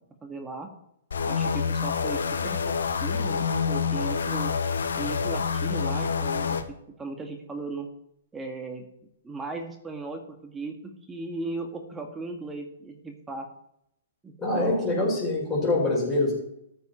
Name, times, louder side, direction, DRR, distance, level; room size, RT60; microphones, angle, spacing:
voice 1, 0.2-0.7 1.2-4.5 5.0-7.9 8.3-8.9 9.2-13.5 14.2-15.2, right 3 dB, 10° right, 4 dB, 1.8 m, -37 dB
sound 1, 1.1-6.6, left 5 dB, 75° left, 1.1 m, -27 dB
voice 2, 14.4-16.3, left 2 dB, 15° left, -8 dB, 5.6 m, -24 dB
14.0 x 7.9 x 4.4 m, 0.77 s
hypercardioid pair, 125°, 0 cm